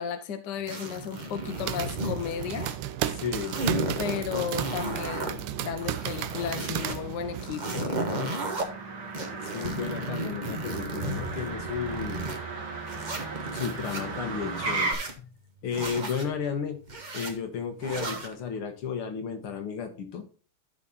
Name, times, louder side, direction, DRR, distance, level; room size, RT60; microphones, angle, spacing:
voice 1, 0.0-2.7 4.0-8.4, left 8 dB, 60° left, 7 dB, 1.4 m, -34 dB
sound 1, 0.7-2.8 3.0-5.3 5.7-7.0 7.4-8.6 9.1-12.4 12.9-14.0 14.5-15.2 15.7-16.3 16.9-17.3 17.8-18.3, right 2 dB, 30° right, 0.9 m, -34 dB
sound 2, 1.3-7.5, right 12 dB, 85° right, 1.5 m, -34 dB
Motor vehicle (road), 1.9-14.9, right 3 dB, 70° right, 2.7 m, -38 dB
voice 2, 3.1-3.6 9.5-12.3 13.4-15.3 15.6-16.8 17.1-20.2, left 6 dB, 75° left, 6 dB, 2.2 m, -33 dB
12.5 x 4.2 x 4.1 m, 0.37 s
omnidirectional pair, 2.4 m